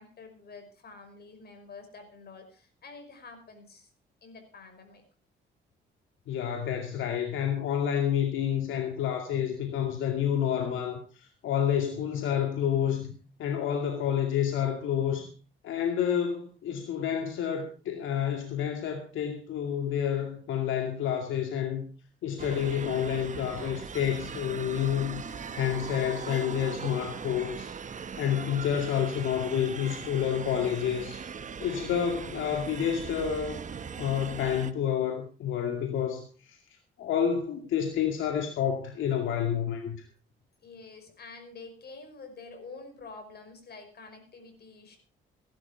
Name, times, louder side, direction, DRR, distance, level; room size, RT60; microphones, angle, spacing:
voice 1, 0.0-3.9 4.2-5.0 40.6-45.0, left 4 dB, 55° left, 7 dB, 5.3 m, -48 dB
voice 2, 6.3-13.1 13.4-15.3 15.6-21.8 22.2-25.2 25.5-27.7 28.2-31.2 31.6-33.6 34.0-36.6 37.0-40.0, left 9 dB, 80° left, 4 dB, 2.3 m, -29 dB
sound 1, 22.4-34.7, right 6 dB, 40° right, 1.2 m, -39 dB
16.5 x 12.0 x 4.8 m, 0.36 s
cardioid pair, 90°, 20 cm